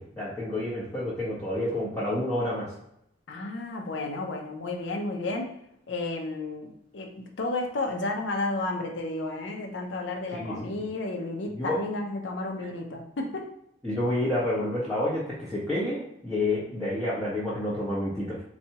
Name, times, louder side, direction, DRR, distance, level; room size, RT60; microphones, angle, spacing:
voice 1, 0.0-2.7 10.3-10.9 11.5-11.8 13.8-18.4, left 1 dB, 10° left, -11 dB, 0.8 m, -29 dB
voice 2, 3.3-5.5 5.9-13.5, left 2 dB, 70° left, 2 dB, 0.6 m, -32 dB
4.1 x 2.3 x 2.8 m, 0.77 s
head